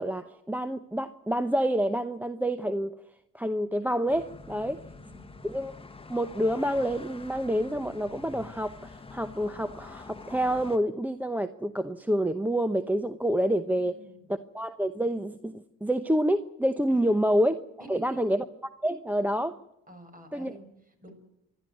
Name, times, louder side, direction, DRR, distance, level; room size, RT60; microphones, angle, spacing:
voice 1, 0.0-2.9 3.3-4.8 5.4-5.7 6.1-14.0 14.5-17.6 17.9-18.4 18.8-19.6 20.3-20.5, equal, 5° right, 9 dB, 0.8 m, -28 dB
sound 1, 4.1-10.8, left 3 dB, 20° left, 1.4 m, -46 dB
voice 2, 4.5-5.2 13.7-14.3 16.9-17.4 17.8-18.2 19.9-21.2, right 1 dB, 30° right, 6 dB, 6.3 m, -50 dB
28.5 x 12.0 x 9.3 m, 0.89 s
cardioid pair, 90°, 30 cm